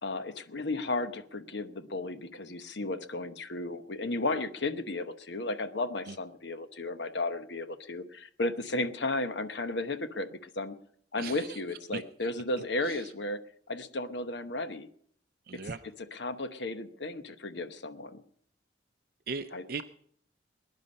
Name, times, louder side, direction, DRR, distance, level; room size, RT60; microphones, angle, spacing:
voice 1, 0.0-10.8 11.1-13.4 13.7-14.9 16.1-18.2 19.5-19.8, left 2 dB, 70° left, 10 dB, 1.0 m, -34 dB
voice 2, 11.2-11.6 11.9-12.0 12.8-13.1 15.5-15.8 19.3-19.8, right 4 dB, 50° right, 9 dB, 0.5 m, -38 dB
20.5 x 10.5 x 5.4 m, 0.62 s
head